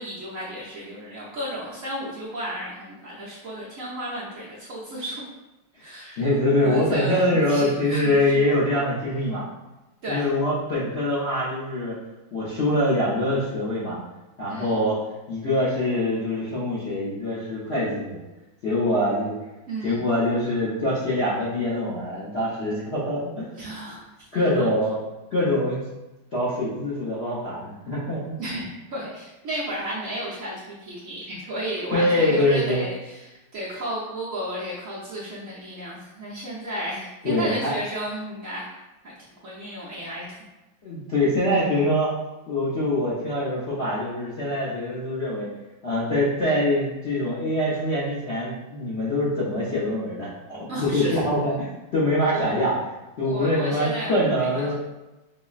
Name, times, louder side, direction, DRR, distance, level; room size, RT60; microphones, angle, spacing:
voice 1, 0.0-5.2 5.8-6.2 6.6-7.2 7.5-8.4 10.0-10.2 14.5-14.8 19.7-20.1 23.6-24.1 24.4-24.7 28.4-38.8 39.4-40.3 50.7-51.2 52.3-52.4 53.2-54.6, right 1 dB, 60° right, -8 dB, 0.9 m, -33 dB
voice 2, 6.2-9.4 10.1-12.0 12.3-14.0 14.4-15.0 15.3-18.2 18.6-19.4 19.8-23.5 24.3-25.0 25.3-25.8 26.3-28.4 31.9-32.8 37.2-37.8 40.8-42.2 42.5-45.5 45.8-52.7 53.2-54.7, left 1 dB, 60° left, -8 dB, 0.6 m, -24 dB
5.4 x 2.0 x 2.4 m, 1.0 s
omnidirectional pair, 2.1 m